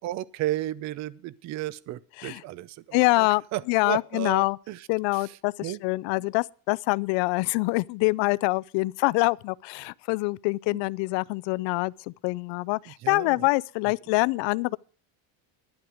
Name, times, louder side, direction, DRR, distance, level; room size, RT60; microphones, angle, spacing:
voice 1, 0.0-4.9 5.1-5.8 6.2-6.3 10.7-10.8 12.9-13.5, right 14 dB, 40° right, 0.5 m, -34 dB
voice 2, 2.9-3.4 3.7-4.6 4.9-5.5 5.8-14.8, left 25 dB, 70° left, 0.5 m, -25 dB
11.5 x 11.0 x 4.9 m
cardioid pair, 165°, 45 cm